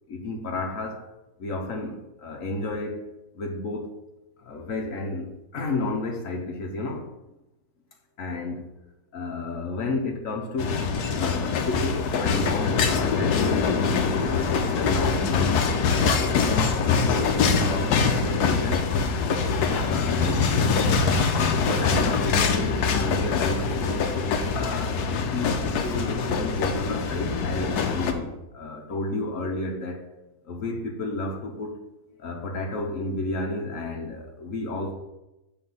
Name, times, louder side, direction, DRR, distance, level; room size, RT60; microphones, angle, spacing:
voice 1, 0.1-1.0 1.4-3.0 3.3-3.9 4.4-7.1 8.2-8.7 9.1-10.8 11.1-13.8 14.2-15.6 16.0-18.9 19.6-20.5 21.6-24.1 24.6-30.0 30.4-31.7 32.2-34.9, left 2 dB, 60° left, 2 dB, 1.3 m, -32 dB
sound 1, 10.6-28.1, left 5 dB, 90° left, 1.3 m, -24 dB
7.7 x 3.8 x 5.5 m, 0.97 s
omnidirectional pair, 1.6 m